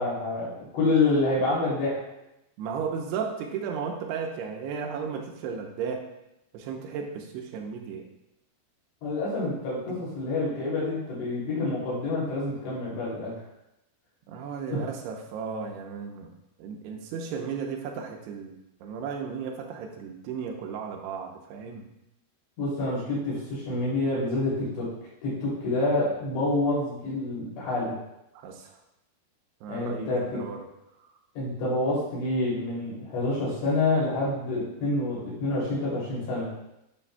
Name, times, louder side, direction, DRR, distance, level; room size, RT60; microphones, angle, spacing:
voice 1, 0.0-2.0 9.0-13.3 14.7-14.8 22.6-24.9 25.2-27.9 29.7-30.4 31.3-36.5, left 2 dB, 90° left, -7 dB, 5.1 m, -27 dB
voice 2, 2.6-6.1 6.5-8.1 9.9-10.0 14.3-16.3 16.6-21.9 28.3-28.8 29.6-30.7, right 6 dB, 80° right, 2 dB, 2.7 m, -35 dB
11.0 x 5.9 x 2.2 m, 0.87 s
omnidirectional pair, 4.9 m